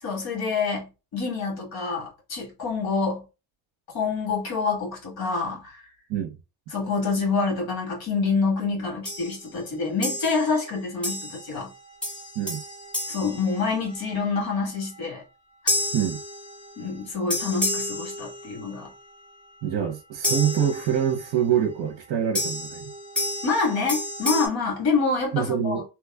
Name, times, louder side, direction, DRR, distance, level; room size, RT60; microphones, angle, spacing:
voice 1, 0.0-3.2 3.9-5.8 6.7-11.7 13.1-15.2 15.6-15.8 16.8-18.9 23.4-25.8, left 4 dB, 60° left, 1.7 m, -27 dB
sound 1, 9.1-9.4 10.0-10.6 11.0-11.6 12.0-14.2 15.7-16.9 17.3-18.8 20.2-21.3 22.4-24.5, left 1 dB, ahead, 1.3 m, -30 dB
voice 2, 19.6-22.9 25.3-25.8, right 9 dB, 65° right, 0.8 m, -25 dB
2.9 x 2.3 x 3.4 m
cardioid pair, 175°, 43 cm